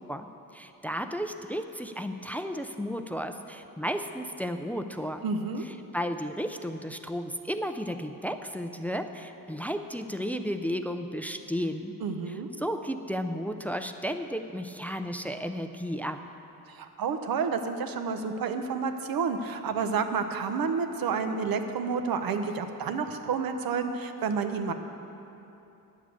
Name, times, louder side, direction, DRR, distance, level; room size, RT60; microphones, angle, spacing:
voice 1, 0.5-5.2 5.6-12.0 12.3-16.2, equal, 5° left, 7 dB, 0.3 m, -33 dB
voice 2, 5.2-5.6 12.0-12.5 16.7-24.7, right 5 dB, 75° right, 7 dB, 0.9 m, -30 dB
10.0 x 7.4 x 8.2 m, 2.9 s
wide cardioid pair, 150°, 36 cm